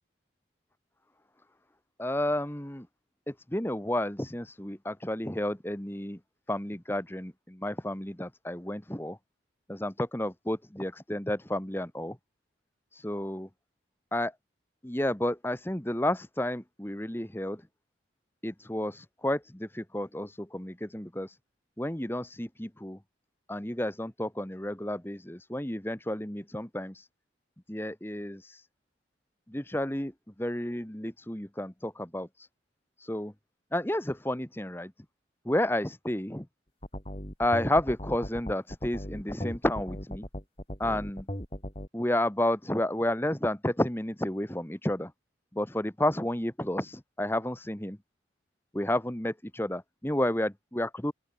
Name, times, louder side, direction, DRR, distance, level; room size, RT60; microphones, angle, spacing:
voice 1, 2.0-2.8 3.5-6.2 6.5-9.2 9.7-12.1 12.9-13.5 14.1-14.3 14.8-17.6 18.4-21.4 21.8-23.0 23.5-27.1 27.7-28.6 29.5-30.1 30.4-32.5 33.0-33.3 33.7-34.9 35.5-36.4 37.4-40.2 40.8-41.2 41.9-45.1 45.5-48.0 48.7-51.1, left 1 dB, 10° left, 1.3 m, -31 dB
sound 1, 36.8-41.9, equal, 30° left, 4.5 m, -37 dB
open air
head